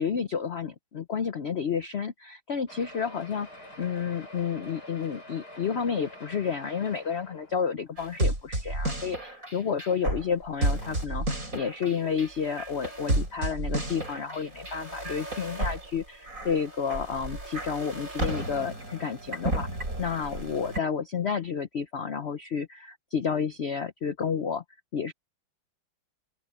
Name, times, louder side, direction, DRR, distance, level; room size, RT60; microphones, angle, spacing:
voice 1, 0.0-19.7 20.0-24.6 24.9-25.1, left 6 dB, 75° left, 0.6 m, -31 dB
sound 1, 2.7-8.1 8.8-8.9 9.1-9.2 9.6-9.7, left 1 dB, 50° left, 7.7 m, -47 dB
sound 2, 8.0-20.8, right 1 dB, 40° right, 7.6 m, -32 dB
open air
omnidirectional pair, 2.2 m